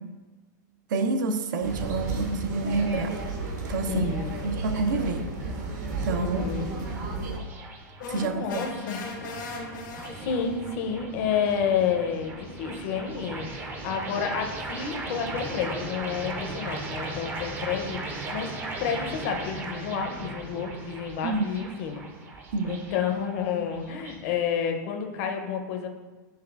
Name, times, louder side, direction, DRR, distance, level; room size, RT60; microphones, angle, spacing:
voice 1, 0.9-3.2 3.7-4.1 4.4-5.3 6.0-6.4 8.1-8.6 21.2-21.5 22.5-22.8, right 3 dB, 85° right, 8 dB, 0.4 m, -28 dB
sound 1, 1.6-7.4, right 3 dB, 70° right, 0.8 m, -33 dB
voice 2, 3.9-4.3 6.2-6.7 8.1-9.0 10.2-18.5 18.8-22.0 22.6-25.9, left 7 dB, 50° left, 4 dB, 0.6 m, -30 dB
sound 2, 5.6-24.3, right 2 dB, 20° right, 0.4 m, -38 dB
sound 3, 8.0-10.6, left 3 dB, 80° left, 0.8 m, -38 dB
5.7 x 3.1 x 2.3 m, 1.2 s
supercardioid pair, 150°, 10 cm